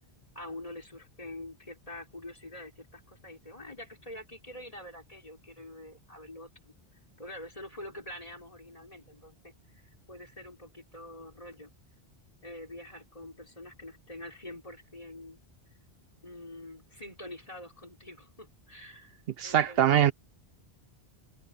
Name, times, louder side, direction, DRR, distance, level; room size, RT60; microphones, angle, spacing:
voice 1, 0.3-6.7 7.2-11.7 12.4-15.4 16.2-20.1, left 1 dB, 35° left, 4.8 m, -46 dB
voice 2, 19.4-20.1, right 10 dB, 70° right, 0.8 m, -22 dB
omnidirectional pair, 1.1 m